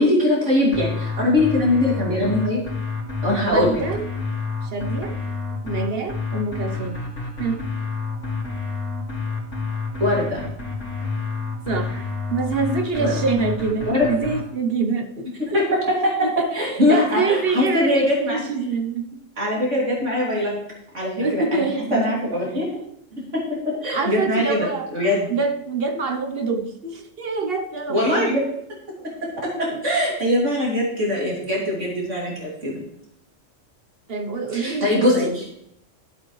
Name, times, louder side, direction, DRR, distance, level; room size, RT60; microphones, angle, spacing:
voice 1, 0.0-2.6 3.2-3.8 10.0-10.4 12.7-13.1 13.9-14.1 15.4-18.4 19.4-20.5 20.9-22.6 23.2-25.3 27.9-28.4 29.0-32.8 34.5-35.4, left 1 dB, 70° right, -4 dB, 3.2 m, -22 dB
sound 1, 0.7-14.4, left 4 dB, 75° left, 3.2 m, -29 dB
voice 2, 3.4-4.0 4.6-5.2 5.6-7.0 7.4-7.6 11.7-15.6 16.2-19.1 21.2-22.2 22.5-22.9 23.9-24.9 25.3-28.4 29.7-29.8 34.1-35.4, right 4 dB, 50° right, 5 dB, 1.1 m, -26 dB
13.0 x 7.9 x 3.2 m, 0.78 s
omnidirectional pair, 1.3 m